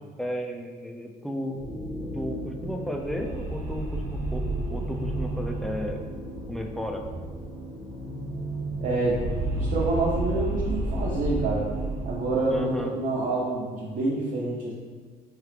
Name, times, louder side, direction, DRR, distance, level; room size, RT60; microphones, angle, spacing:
voice 1, 0.2-1.6 2.1-6.0 6.5-7.0 12.5-12.9, equal, ahead, 2 dB, 0.3 m, -34 dB
sound 1, 1.6-13.5, right 1 dB, 45° left, 1.0 m, -37 dB
sound 2, 2.3-7.6 7.9-8.0 8.3-12.6, right 1 dB, 85° right, 1.0 m, -32 dB
voice 2, 8.8-9.2 9.5-11.7 12.0-14.7, right 2 dB, 55° right, -6 dB, 0.7 m, -27 dB
4.5 x 3.2 x 2.4 m, 1.5 s
cardioid pair, 110°, 17 cm